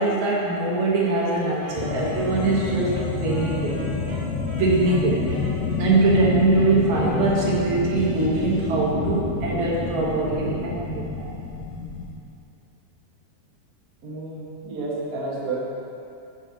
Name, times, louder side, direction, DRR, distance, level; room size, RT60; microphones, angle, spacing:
voice 1, 0.0-3.8 4.6-5.2 5.7-11.3, right 2 dB, 75° right, -4 dB, 2.4 m, -22 dB
Wind instrument woodwind instrument, 1.0-8.0, right 1 dB, 90° right, 2.7 m, -41 dB
sound 1, 1.7-12.1, left 4 dB, 75° left, 2.5 m, -28 dB
voice 2, 14.0-15.5, right 3 dB, 55° right, -6 dB, 1.1 m, -31 dB
6.2 x 4.9 x 5.6 m, 2.7 s
omnidirectional pair, 3.5 m